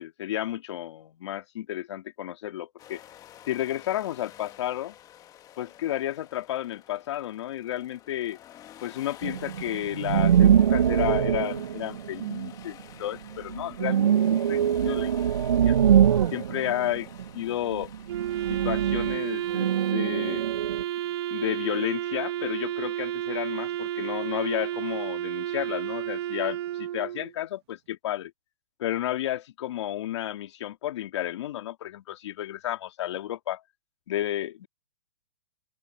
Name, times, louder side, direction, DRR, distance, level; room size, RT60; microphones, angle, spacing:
voice 1, 0.0-3.0 3.5-5.0 5.6-8.4 8.8-15.1 15.4-15.7 16.3-17.1 17.3-17.9 18.5-20.5 21.3-28.3 28.8-33.6 34.1-34.7, left 13 dB, 60° left, 2.4 m, -32 dB
sound 1, 2.8-19.9, left 11 dB, 20° left, 1.5 m, -51 dB
sound 2, 9.2-12.8 13.3-17.4 17.7-20.8, right 9 dB, 85° right, 0.6 m, -23 dB
Wind instrument woodwind instrument, 18.1-27.3, right 12 dB, 50° right, 1.2 m, -31 dB
open air
hypercardioid pair, 140°, 17 cm